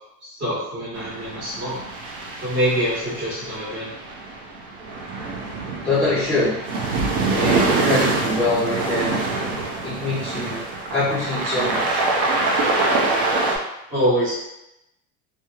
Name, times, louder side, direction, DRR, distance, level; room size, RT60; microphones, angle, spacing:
voice 1, 0.2-1.8 2.4-3.9 13.9-14.4, equal, 30° right, -9 dB, 1.3 m, -24 dB
sound 1, 0.9-13.6, right 3 dB, 60° right, 0.6 m, -25 dB
voice 2, 5.8-6.6 7.3-9.3 9.8-10.6 10.9-12.0, left 2 dB, 5° left, -14 dB, 0.4 m, -23 dB
2.9 x 2.1 x 2.3 m, 0.86 s
cardioid pair, 155°, 40 cm